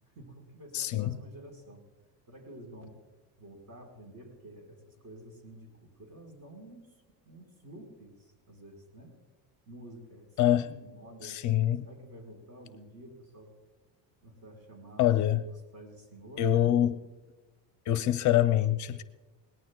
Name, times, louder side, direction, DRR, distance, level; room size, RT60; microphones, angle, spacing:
voice 1, 0.0-1.8 2.3-3.0 3.4-6.9 7.2-9.2 9.7-13.5 14.2-15.1 15.7-16.9, right 1 dB, 40° right, 4.6 m, -50 dB
voice 2, 0.7-1.2 10.4-10.7 11.2-11.8 15.0-15.5 16.4-17.0 17.9-19.0, left 12 dB, 50° left, 0.6 m, -25 dB
21.5 x 18.5 x 2.3 m
cardioid pair, 130°, 38 cm